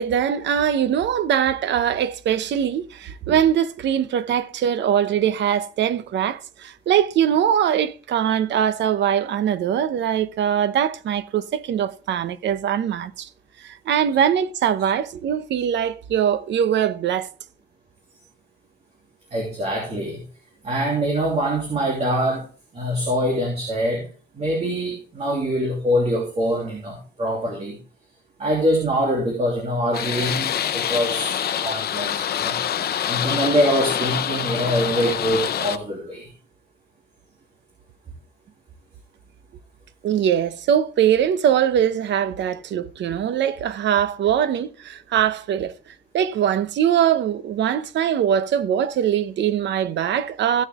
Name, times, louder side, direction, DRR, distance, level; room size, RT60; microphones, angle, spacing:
voice 1, 0.0-13.3 13.6-17.3 40.0-45.7 46.1-50.6, right 9 dB, 80° right, 0.8 m, -22 dB
voice 2, 19.3-20.2 20.6-22.5 22.7-24.1 24.3-27.8 28.4-32.6 33.1-36.3, equal, 35° right, 3.0 m, -24 dB
sound 1, 29.9-35.8, left 9 dB, 60° left, 0.7 m, -25 dB
15.5 x 6.5 x 3.6 m
wide cardioid pair, 165°, 18 cm